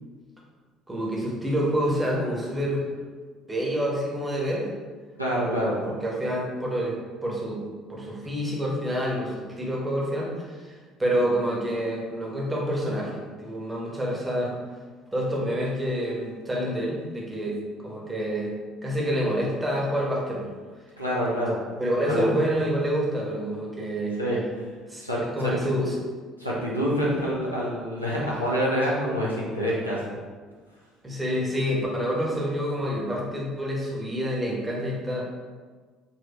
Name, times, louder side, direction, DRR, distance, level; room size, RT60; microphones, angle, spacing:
voice 1, 0.9-2.8 3.5-4.7 5.4-7.6 7.9-14.6 15.1-18.5 18.8-20.5 21.8-24.2 24.9-25.0 25.3-26.0 27.0-27.1 31.0-35.2, equal, 15° right, -3 dB, 1.0 m, -28 dB
voice 2, 5.2-5.7 21.0-21.5 22.0-22.3 24.2-24.4 25.0-25.5 26.4-30.1, equal, 90° left, -7 dB, 0.7 m, -26 dB
4.1 x 2.6 x 2.9 m, 1.5 s
figure-of-eight pair, 55°, 0 cm